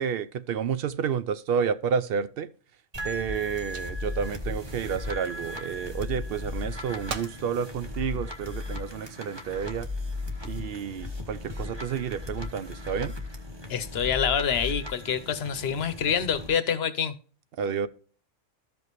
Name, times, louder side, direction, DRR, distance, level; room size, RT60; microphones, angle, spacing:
voice 1, 0.0-2.5 3.0-9.9 10.4-13.1 17.6-17.9, right 7 dB, 60° right, 0.7 m, -30 dB
sound 1, 2.7-5.7 6.2-6.8 7.1-7.4 8.0-8.8 9.4-9.8, right 7 dB, 80° right, 1.2 m, -43 dB
sound 2, 2.9-16.5, left 2 dB, 20° right, 1.3 m, -36 dB
voice 2, 13.7-17.1, left 7 dB, 60° left, 1.0 m, -26 dB
13.5 x 5.3 x 3.0 m
omnidirectional pair, 1.3 m